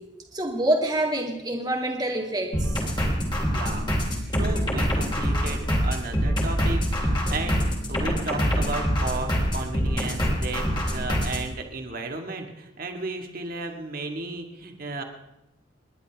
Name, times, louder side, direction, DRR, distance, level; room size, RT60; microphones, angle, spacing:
voice 1, 0.3-2.7, right 1 dB, 20° right, 1 dB, 2.2 m, -26 dB
sound 1, 2.5-11.4, equal, 25° left, 3.2 m, -25 dB
voice 2, 3.5-15.0, right 2 dB, 50° right, 4 dB, 1.9 m, -34 dB
29.5 x 11.0 x 3.5 m, 0.90 s
head